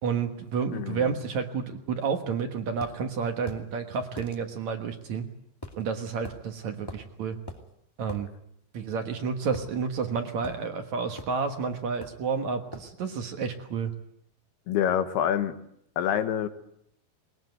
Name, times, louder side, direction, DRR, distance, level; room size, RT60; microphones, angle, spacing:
voice 1, 0.0-5.3 5.8-7.4 8.0-8.3 8.7-13.9, right 5 dB, 60° right, 6 dB, 2.3 m, -30 dB
voice 2, 0.7-1.1 14.7-15.6 16.0-16.5, left 9 dB, 90° left, 10 dB, 3.4 m, -26 dB
sound 1, 2.8-3.0 3.5-3.7 4.2-4.4 5.6-5.8 6.2-6.4 6.9-7.1 7.5-7.6 8.1-8.2 9.5-10.1 10.4-10.6 11.2-11.4 12.0-12.3 12.7-12.9, left 1 dB, 10° left, 1.1 m, -41 dB
21.0 x 20.5 x 9.4 m, 0.73 s
omnidirectional pair, 4.5 m